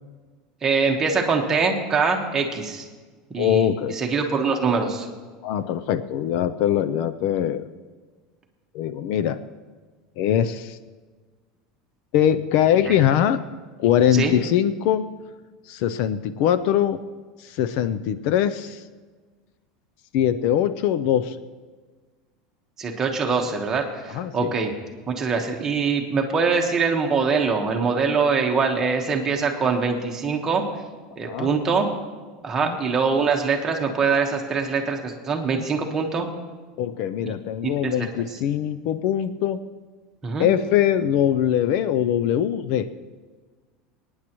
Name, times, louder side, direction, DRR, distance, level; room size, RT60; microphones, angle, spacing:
voice 1, 0.6-2.8 3.3-5.1 12.8-13.0 14.1-14.3 22.8-24.7 25.1-30.6 31.2-31.9 32.4-36.3 37.6-38.1 40.2-40.5, right 5 dB, 15° right, 2 dB, 1.2 m, -23 dB
voice 2, 3.4-4.0 5.4-7.7 8.7-9.4 10.2-10.8 12.1-13.4 13.8-15.0 15.7-17.0 17.4-18.8 20.1-21.4 24.1-24.5 31.2-31.5 32.7-32.8 36.8-39.6 40.4-42.9, left 10 dB, 50° left, 13 dB, 0.4 m, -22 dB
25.5 x 9.7 x 3.0 m, 1.4 s
supercardioid pair, 170°, 3 cm